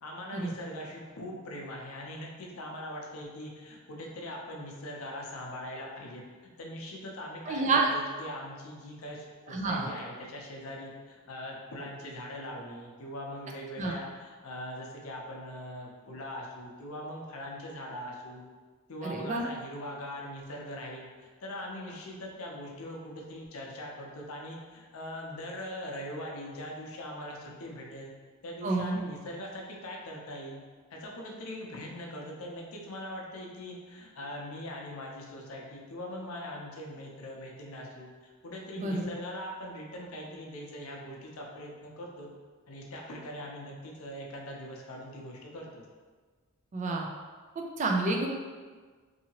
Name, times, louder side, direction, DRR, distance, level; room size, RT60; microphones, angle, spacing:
voice 1, 0.0-18.4 18.9-28.1 28.4-30.6 30.9-42.3 42.7-45.8, left 1 dB, 70° left, -1 dB, 0.6 m, -41 dB
voice 2, 7.5-7.9 9.5-9.9 13.8-13.9 19.0-19.5 28.6-29.0 38.8-39.0 46.7-47.1 47.6-48.3, right 3 dB, 35° right, 1 dB, 0.3 m, -29 dB
2.7 x 2.7 x 2.8 m, 1.5 s
head